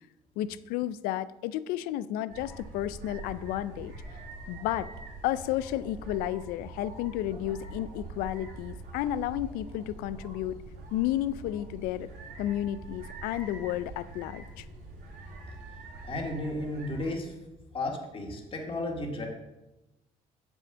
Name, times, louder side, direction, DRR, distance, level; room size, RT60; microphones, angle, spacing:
voice 1, 0.4-4.2 4.5-4.9 5.2-10.6 10.9-12.1 12.4-14.6, left 13 dB, 85° left, 16 dB, 0.4 m, -32 dB
sound 1, 2.3-17.1, right 3 dB, 75° right, 2.8 m, -44 dB
voice 2, 16.0-17.4 17.7-19.3, left 2 dB, 40° left, 1 dB, 2.1 m, -33 dB
7.5 x 6.3 x 6.2 m, 1.0 s
cardioid pair, 95°, 15 cm